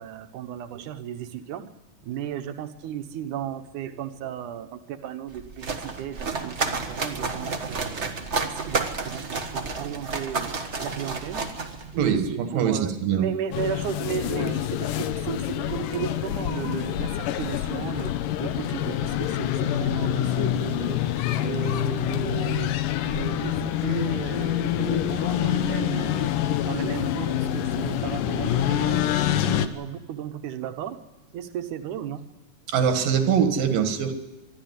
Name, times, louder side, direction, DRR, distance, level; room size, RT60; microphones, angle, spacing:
voice 1, 0.0-1.6 2.0-11.4 11.9-18.1 18.4-21.0 21.4-26.3 26.6-29.1 29.5-31.0 31.3-32.2, right 9 dB, 70° right, 8 dB, 2.5 m, -35 dB
sound 1, 5.3-12.3, right 4 dB, 55° right, 0.7 m, -31 dB
voice 2, 12.0-13.3 32.7-34.1, right 7 dB, 90° right, 7 dB, 3.4 m, -23 dB
sound 2, 13.5-29.7, left 11 dB, 80° left, 2.6 m, -26 dB
23.5 x 13.0 x 9.6 m, 1.1 s
omnidirectional pair, 3.8 m